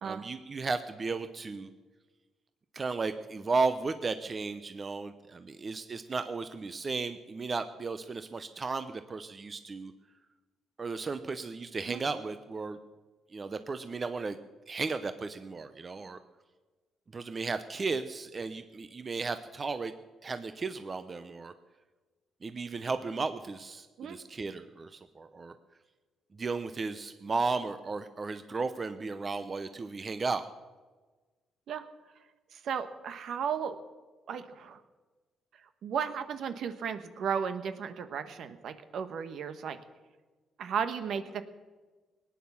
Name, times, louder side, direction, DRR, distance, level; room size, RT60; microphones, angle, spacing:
voice 1, 0.0-1.7 2.7-9.9 10.8-12.8 13.3-14.4 14.7-16.2 17.1-19.9 20.2-21.5 22.4-25.5 26.3-30.5, right 4 dB, 35° right, 10 dB, 0.8 m, -34 dB
voice 2, 32.5-33.8 34.3-34.8 35.8-39.8 40.6-41.4, right 7 dB, 70° right, 10 dB, 1.2 m, -34 dB
18.5 x 9.6 x 7.1 m, 1.3 s
cardioid pair, 90°, 0 cm